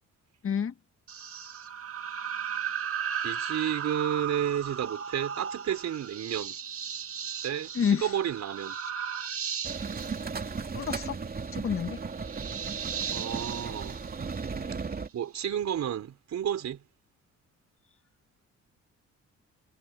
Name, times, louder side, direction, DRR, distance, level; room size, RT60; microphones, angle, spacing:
voice 1, 0.4-0.7 7.7-8.1 10.7-11.2 11.5-12.0, left 7 dB, 45° left, 1.5 m, -28 dB
sound 1, 1.1-14.9, right 7 dB, 50° right, 2.0 m, -36 dB
voice 2, 3.2-6.6 7.4-8.8 13.1-14.0 15.1-16.8, right 9 dB, 65° right, 4.6 m, -31 dB
sound 2, 9.6-15.1, right 4 dB, 30° right, 2.6 m, -36 dB
cardioid pair, 90°, 30 cm